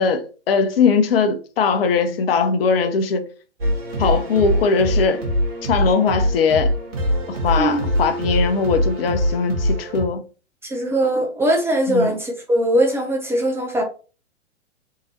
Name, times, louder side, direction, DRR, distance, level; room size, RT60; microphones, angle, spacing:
voice 1, 0.0-3.3 4.0-5.2 5.6-6.7 7.3-10.2 11.9-12.1, left 5 dB, 55° left, 0.9 m, -20 dB
sound 1, 3.6-10.0, equal, 60° right, 1.8 m, -23 dB
voice 2, 10.6-13.8, right 1 dB, 5° right, 0.6 m, -20 dB
4.1 x 3.8 x 2.9 m
figure-of-eight pair, 110°, 35 cm